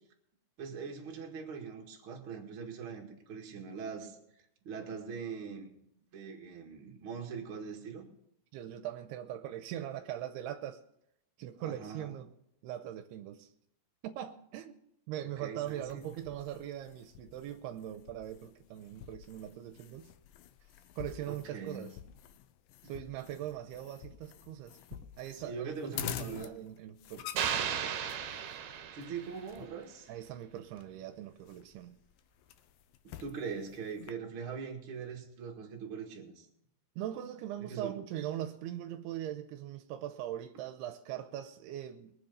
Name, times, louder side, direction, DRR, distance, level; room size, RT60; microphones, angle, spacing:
voice 1, 0.6-4.2 4.6-5.7 6.1-8.0 11.6-12.1 15.4-16.1 21.3-21.8 25.3-26.5 28.9-30.1 33.2-36.5 37.6-38.0, right 6 dB, 40° right, 2.1 m, -42 dB
voice 2, 8.5-10.8 11.4-12.3 12.6-13.5 14.0-14.8 15.1-20.1 21.0-22.0 22.8-27.8 30.1-32.0 37.0-42.1, right 11 dB, 80° right, 2.6 m, -41 dB
sound 1, 15.7-34.1, left 11 dB, 80° left, 2.1 m, -48 dB
sound 2, 27.4-29.5, right 8 dB, 65° right, 2.5 m, -35 dB
22.0 x 7.5 x 5.3 m
omnidirectional pair, 4.7 m